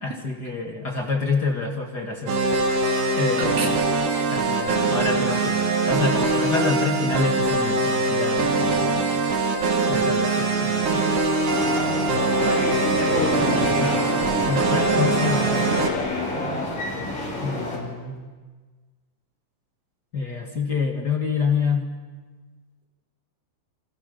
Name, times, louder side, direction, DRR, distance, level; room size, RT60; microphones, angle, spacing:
voice 1, 0.0-2.4 3.1-3.7 4.3-9.2 9.9-11.1 13.8-14.1 14.5-15.8 17.4-18.3 20.1-21.9, left 4 dB, 35° left, 2 dB, 2.1 m, -27 dB
sound 1, 2.3-15.9, right 3 dB, 60° right, 3.6 m, -22 dB
voice 2, 3.4-3.7 12.4-13.4, right 3 dB, 85° right, 1 dB, 5.1 m, -30 dB
sound 2, 11.5-17.8, left 2 dB, 55° left, 6.2 m, -27 dB
28.5 x 25.5 x 6.9 m, 1.4 s
omnidirectional pair, 4.1 m